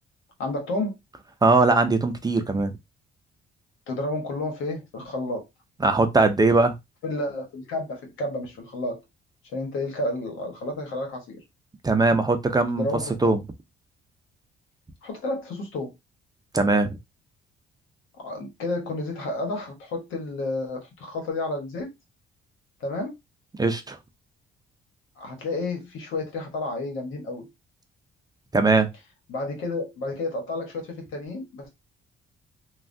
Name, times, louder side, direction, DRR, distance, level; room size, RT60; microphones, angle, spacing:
voice 1, 0.4-0.9 3.9-5.4 7.0-9.0 9.5-11.4 12.8-13.2 15.0-15.9 18.2-21.9 22.8-23.1 25.2-27.5 29.3-31.7, left 2 dB, 85° left, 1.2 m, -31 dB
voice 2, 1.4-2.8 5.8-6.7 11.8-12.9 13.2-13.4 16.5-17.0 23.6-24.0 28.5-28.9, right 3 dB, 20° right, 0.5 m, -20 dB
3.2 x 2.3 x 2.6 m
cardioid pair, 90°, 20 cm